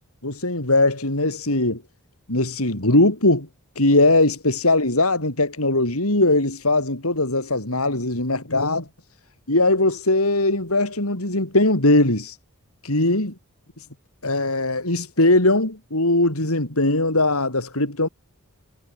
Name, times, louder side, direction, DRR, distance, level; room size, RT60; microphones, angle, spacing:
voice 1, 0.2-1.8 2.3-3.5 3.8-8.9 9.5-12.3 12.8-13.3 14.2-18.1, left 2 dB, 80° left, 5.9 m, -20 dB
head